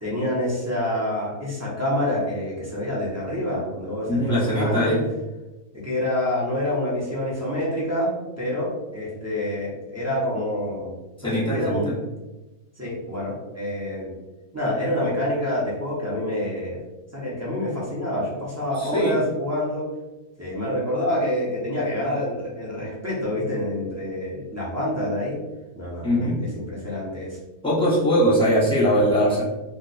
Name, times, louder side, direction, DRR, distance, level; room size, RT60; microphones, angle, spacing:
voice 1, 0.0-5.0 5.7-10.9 11.3-11.9 12.8-14.1 14.5-16.8 17.1-19.8 20.4-25.4 25.7-26.3 26.5-27.4 29.3-29.4, left 1 dB, 15° right, -7 dB, 0.5 m, -27 dB
voice 2, 4.1-5.0 11.2-12.0 18.8-19.2 26.0-26.5 27.6-29.4, equal, 5° left, -10 dB, 1.1 m, -21 dB
2.5 x 2.4 x 4.0 m, 1.1 s
omnidirectional pair, 1.7 m